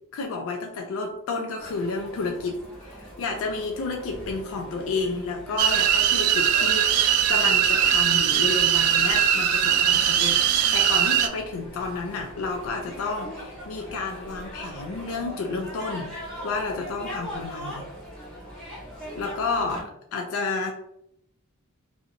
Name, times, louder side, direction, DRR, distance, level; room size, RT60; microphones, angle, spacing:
voice 1, 0.1-16.2 16.4-17.9 19.1-20.7, left 3 dB, 65° left, 3 dB, 0.3 m, -31 dB
sound 1, 1.6-19.8, equal, 5° left, 1.0 m, -41 dB
sound 2, 5.6-11.3, right 9 dB, 75° right, 0.3 m, -21 dB
2.6 x 2.0 x 2.5 m, 0.77 s
head